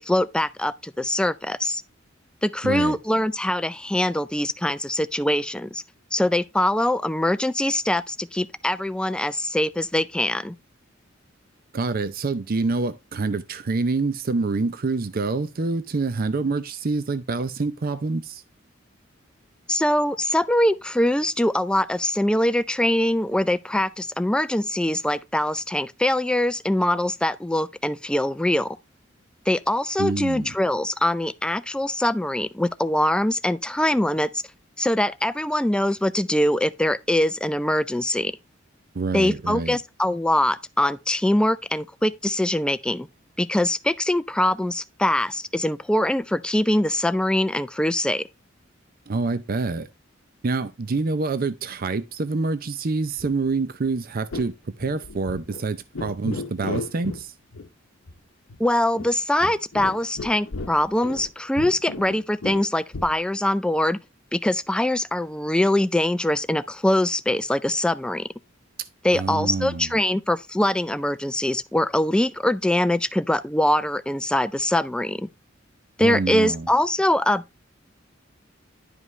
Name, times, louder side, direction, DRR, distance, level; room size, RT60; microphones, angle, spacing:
voice 1, 0.0-1.8 2.4-5.8 6.1-10.6 19.7-28.8 29.5-34.4 34.8-38.3 39.1-43.1 43.4-48.2 58.6-64.0 64.3-68.3 69.0-75.3 76.0-77.6, left 1 dB, 5° left, 0.4 m, -23 dB
voice 2, 2.6-3.0 11.7-18.4 30.0-30.5 38.9-39.8 49.1-49.9 50.4-54.5 54.8-57.3 69.1-69.9 76.0-76.7, right 3 dB, 50° right, 0.6 m, -26 dB
sound 1, 53.2-53.6 53.8-53.9 54.3-54.5 54.8-55.6 55.9-57.2 57.5-57.7 58.1-58.2 58.5-58.6 58.9-61.3 61.6-63.2, left 3 dB, 80° left, 0.8 m, -35 dB
11.0 x 5.2 x 3.2 m
head